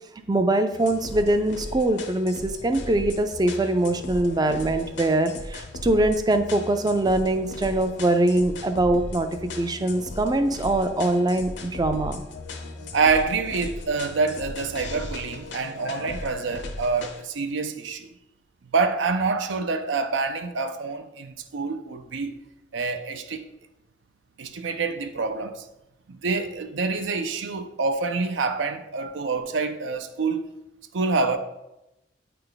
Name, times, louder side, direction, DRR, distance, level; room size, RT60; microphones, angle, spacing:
voice 1, 0.3-9.3 9.6-12.2, right 1 dB, 20° right, 0.4 m, -23 dB
sound 1, 0.7-17.2, left 2 dB, 70° left, 0.7 m, -37 dB
voice 2, 12.9-18.1 18.6-22.3 22.7-23.4 24.4-25.6 26.1-30.5 30.9-31.4, right 4 dB, 80° right, 0.5 m, -26 dB
8.8 x 3.4 x 3.9 m
head